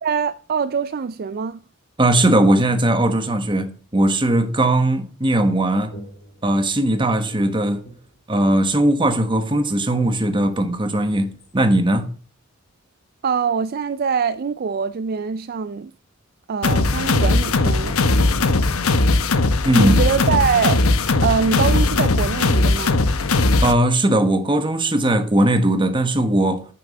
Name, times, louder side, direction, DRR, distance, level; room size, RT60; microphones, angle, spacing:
voice 1, 0.0-1.6 13.2-15.9 16.5-18.0 19.8-20.8 21.2-23.0, right 6 dB, 45° right, 0.4 m, -23 dB
voice 2, 2.0-6.0 6.4-7.8 8.3-12.2 19.6-20.1 23.6-26.7, right 1 dB, 25° right, 1.2 m, -19 dB
sound 1, 5.9-6.8 7.2-8.7 9.0-11.5, right 1 dB, 50° left, 2.6 m, -44 dB
sound 2, 16.6-23.7, left 2 dB, 90° left, 0.9 m, -18 dB
9.2 x 6.8 x 5.3 m
head